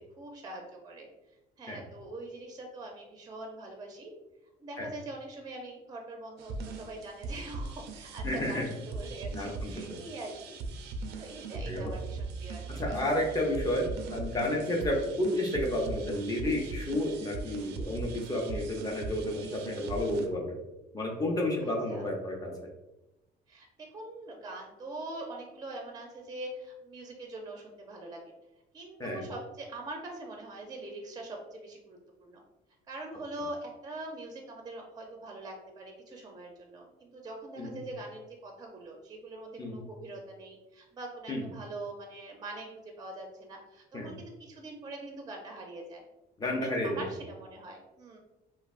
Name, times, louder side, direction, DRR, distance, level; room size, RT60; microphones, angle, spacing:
voice 1, 0.2-1.1 1.6-4.1 4.6-10.6 11.2-12.6 12.9-13.0 21.6-22.1 23.5-28.2 28.7-32.4 32.9-46.0 46.6-48.2, right 2 dB, 25° right, 2 dB, 0.5 m, -43 dB
sound 1, 6.4-20.3, right 3 dB, 80° right, 0.4 m, -40 dB
voice 2, 8.2-8.7 9.3-9.7 11.7-11.9 12.8-13.8 14.1-20.5 20.9-22.5 29.0-29.2 37.6-37.8 39.6-39.8 41.3-41.4 43.9-44.1 46.4-47.0, left 1 dB, 20° left, 0 dB, 0.6 m, -31 dB
3.1 x 2.4 x 2.4 m, 0.98 s
cardioid pair, 110°, 17 cm